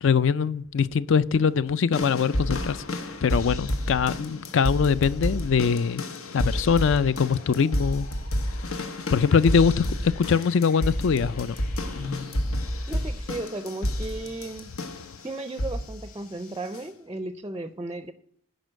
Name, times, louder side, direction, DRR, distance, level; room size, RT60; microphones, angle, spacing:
voice 1, 0.0-2.8 3.2-6.0 6.3-8.1 9.1-11.6, left 6 dB, 60° left, 0.4 m, -22 dB
sound 1, 1.9-15.2 15.6-16.0 16.7-16.8, left 1 dB, 90° left, 1.1 m, -30 dB
sound 2, 2.9-16.8, left 2 dB, 45° left, 3.7 m, -50 dB
voice 2, 12.9-14.7 15.2-18.1, right 2 dB, 15° right, 0.4 m, -35 dB
11.0 x 5.1 x 6.4 m
head